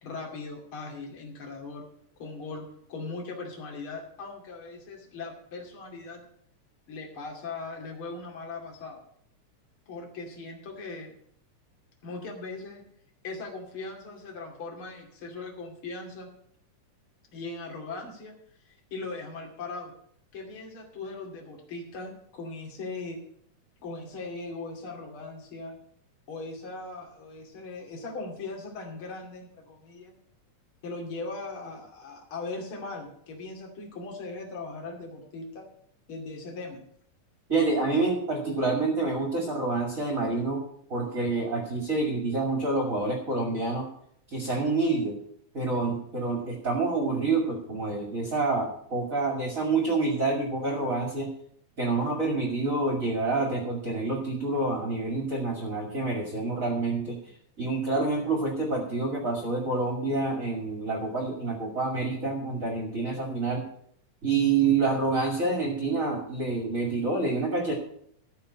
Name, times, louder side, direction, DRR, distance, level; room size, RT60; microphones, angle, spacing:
voice 1, 0.0-1.9 2.2-2.6 2.9-6.2 6.9-9.0 9.9-11.1 12.0-12.8 13.2-16.3 17.3-18.3 18.6-19.9 20.3-23.2 23.8-25.8 26.3-30.2 30.8-35.7 36.1-36.8, left 3 dB, 45° left, 0 dB, 3.2 m, -39 dB
voice 2, 37.5-40.6 40.9-43.9 44.3-45.2 45.5-51.3 51.8-57.2 57.6-63.7 64.2-67.7, right 3 dB, 30° right, 1 dB, 2.4 m, -27 dB
14.0 x 5.2 x 8.5 m, 0.67 s
omnidirectional pair, 3.6 m